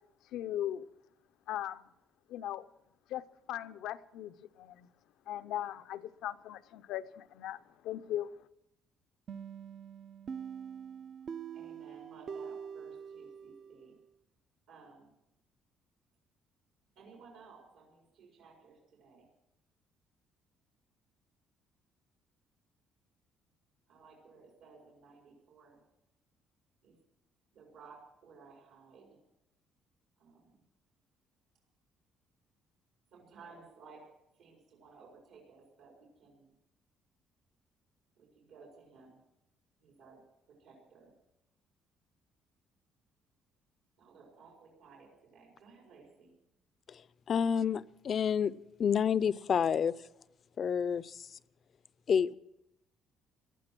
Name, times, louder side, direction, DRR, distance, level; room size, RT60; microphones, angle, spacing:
voice 1, 0.3-0.9 1.5-1.8 2.3-2.7 3.1-4.9 5.3-8.4, left 12 dB, 85° left, 11 dB, 0.6 m, -39 dB
sound 1, 9.3-14.0, right 7 dB, 45° right, 0.5 m, -44 dB
voice 2, 11.5-13.9 14.7-15.1 16.9-19.3 23.9-25.8 26.8-26.9 27.5-29.2 30.2-30.6 33.1-36.5 38.1-39.2 39.8-41.1 44.0-46.4, right 4 dB, 85° right, -2 dB, 4.7 m, -57 dB
voice 3, 47.3-49.9 50.6-51.4 52.1-52.3, left 7 dB, 45° left, 18 dB, 0.5 m, -29 dB
18.5 x 12.0 x 6.1 m, 0.86 s
cardioid pair, 130°, 0 cm